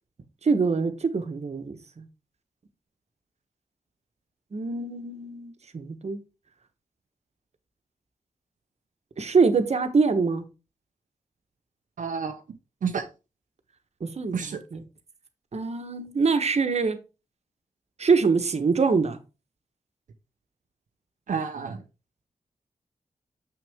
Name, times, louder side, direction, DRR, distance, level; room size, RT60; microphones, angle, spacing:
voice 1, 0.4-2.0 4.5-6.2 9.2-10.4 14.0-14.8 15.5-17.0 18.0-19.2, right 4 dB, 55° right, 1.2 m, -24 dB
voice 2, 12.0-12.4 12.8-13.0 14.3-14.6 21.3-21.8, right 6 dB, 75° right, 0.8 m, -29 dB
7.0 x 6.2 x 3.5 m
cardioid pair, 70°, 13 cm